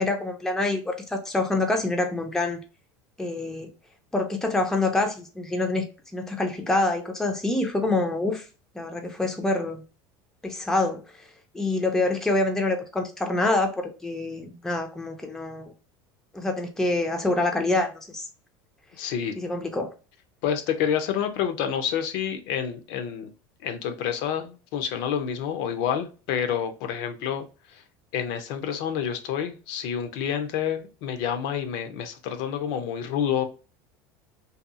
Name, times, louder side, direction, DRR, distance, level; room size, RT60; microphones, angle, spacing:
voice 1, 0.0-2.6 3.2-3.7 4.1-5.8 6.1-8.5 8.7-9.8 10.4-11.0 11.5-15.7 16.3-18.3 19.4-19.9, left 2 dB, 5° left, 0.4 m, -26 dB
voice 2, 19.0-19.3 20.4-23.3 23.6-27.5 28.1-33.5, left 8 dB, 65° left, 0.5 m, -28 dB
2.8 x 2.2 x 2.4 m
supercardioid pair, 120°, 11 cm